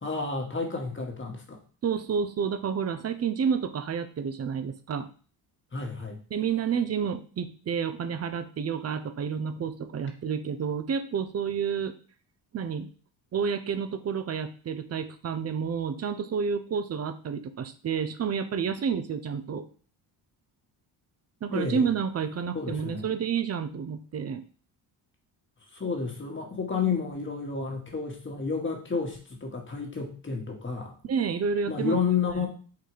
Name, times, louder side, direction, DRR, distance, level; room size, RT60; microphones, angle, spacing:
voice 1, 0.0-1.6 5.7-6.2 21.5-21.9 22.5-23.1 25.7-30.9 31.7-32.5, left 5 dB, 25° left, 1 dB, 1.4 m, -31 dB
voice 2, 1.8-5.1 6.3-11.9 12.5-12.9 13.3-19.7 21.4-24.4 31.0-32.0 32.4-32.5, right 6 dB, 35° right, 11 dB, 0.5 m, -30 dB
3.9 x 2.7 x 4.8 m, 0.41 s
supercardioid pair, 70°, 47 cm